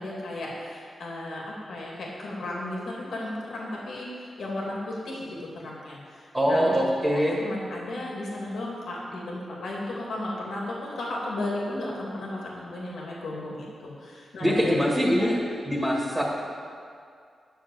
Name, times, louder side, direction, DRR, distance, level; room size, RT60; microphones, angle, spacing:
voice 1, 0.0-1.4 1.7-5.3 5.6-6.7 7.1-15.3, left 1 dB, 85° left, -4 dB, 2.6 m, -34 dB
voice 2, 6.3-7.4 14.4-15.4 15.6-16.5, equal, 15° right, -4 dB, 1.8 m, -23 dB
10.5 x 6.4 x 8.2 m, 2.2 s
wide cardioid pair, 110°, 0 cm